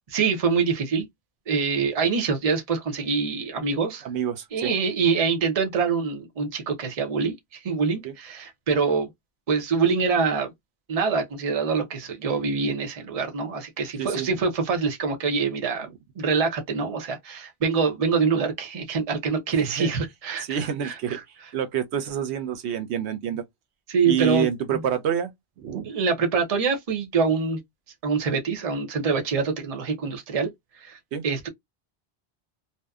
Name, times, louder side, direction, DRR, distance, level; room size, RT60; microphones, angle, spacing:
voice 1, 0.1-1.1 1.5-4.1 4.5-9.1 9.5-10.5 10.9-15.9 16.2-21.2 23.9-24.8 25.8-27.6 28.0-31.0 31.2-31.5, right 5 dB, 40° right, 0.7 m, -25 dB
voice 2, 4.0-4.7 8.0-8.1 14.0-14.3 19.5-19.9 20.4-21.2 21.5-23.4 24.0-25.3 25.6-25.9 31.1-31.2, right 9 dB, 90° right, 0.9 m, -27 dB
2.7 x 2.1 x 2.3 m
omnidirectional pair, 1.1 m